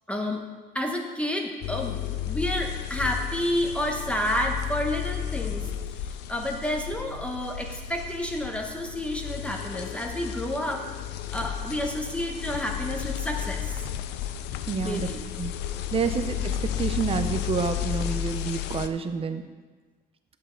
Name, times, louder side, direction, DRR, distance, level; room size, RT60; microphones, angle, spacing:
voice 1, 0.1-0.4 0.7-5.7 6.3-10.9 11.3-13.8 14.8-15.2 15.7-15.8, left 1 dB, 5° left, 1 dB, 0.9 m, -30 dB
sound 1, 1.6-18.9, left 10 dB, 90° left, 0.5 m, -33 dB
voice 2, 14.7-15.1 15.4-15.5 15.9-19.4, right 5 dB, 35° right, 8 dB, 0.7 m, -28 dB
8.7 x 8.0 x 3.9 m, 1.3 s
cardioid pair, 110°, 17 cm